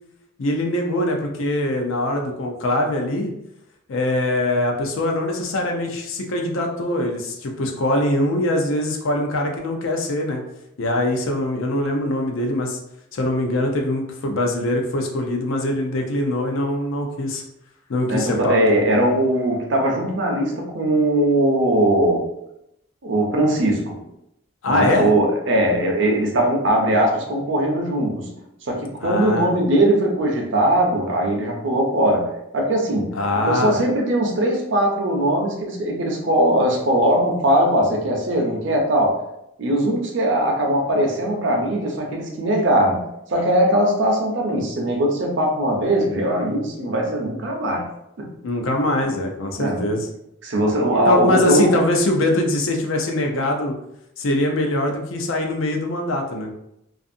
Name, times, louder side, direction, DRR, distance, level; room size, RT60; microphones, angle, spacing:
voice 1, 0.4-3.3 3.9-10.4 10.8-12.8 13.1-17.4 17.9-18.6 24.6-25.1 29.0-29.5 33.1-33.8 48.4-50.1 51.1-53.7 54.2-56.5, left 1 dB, 75° left, 2 dB, 0.5 m, -22 dB
voice 2, 18.1-22.3 23.0-24.0 24.7-28.3 28.6-32.3 32.5-33.2 33.5-39.2 39.6-43.0 43.3-47.8 48.2-48.3 49.0-49.1 49.6-50.0 50.4-51.8, right 1 dB, 60° right, 0 dB, 0.6 m, -20 dB
2.4 x 2.4 x 2.6 m, 0.82 s
head